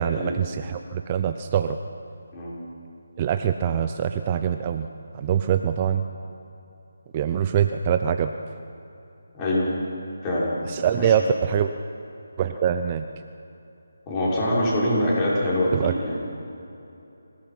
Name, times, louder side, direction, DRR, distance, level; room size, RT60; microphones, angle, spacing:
voice 1, 0.0-1.8 3.2-4.9 5.1-6.0 7.1-8.3 10.7-11.7 12.4-13.1 15.7-15.9, right 8 dB, 25° right, 8 dB, 0.7 m, -24 dB
voice 2, 9.3-9.7 10.2-10.5 11.0-11.1 14.1-16.2, left 1 dB, 20° left, -6 dB, 6.1 m, -24 dB
26.0 x 18.0 x 6.1 m, 3.0 s
figure-of-eight pair, 160°, 0 cm